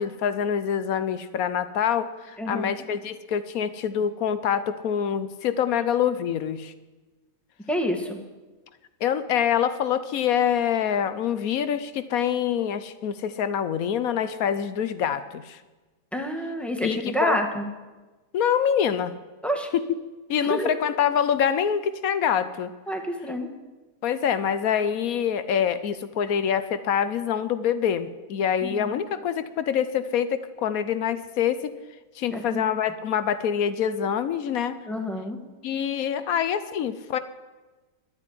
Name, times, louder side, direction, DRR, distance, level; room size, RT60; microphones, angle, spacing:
voice 1, 0.0-6.7 9.0-15.6 16.8-17.4 18.3-19.1 19.7-19.8 20.3-22.7 24.0-31.7 32.2-34.8 35.6-37.2, left 8 dB, 65° left, 13 dB, 1.0 m, -25 dB
voice 2, 7.7-8.2 16.1-17.7 19.4-19.7 20.5-20.7 22.9-23.5 28.6-29.0 32.3-32.6 34.9-35.4, equal, ahead, 4 dB, 1.2 m, -28 dB
12.0 x 8.5 x 9.7 m, 1.2 s
omnidirectional pair, 1.9 m